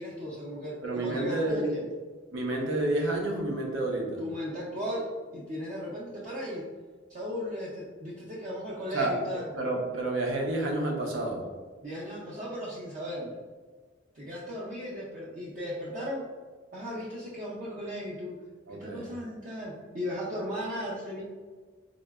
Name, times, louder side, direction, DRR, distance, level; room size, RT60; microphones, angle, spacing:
voice 1, 0.0-1.8 4.2-5.1 5.3-6.7 7.1-9.5 11.8-13.4 14.1-16.3 16.7-18.4 18.7-21.2, equal, 40° right, -6 dB, 0.4 m, -36 dB
voice 2, 0.8-1.7 2.3-4.2 8.9-9.1 9.5-11.5 18.7-19.1, right 2 dB, 90° right, 0 dB, 0.6 m, -29 dB
3.8 x 2.1 x 2.3 m, 1.5 s
head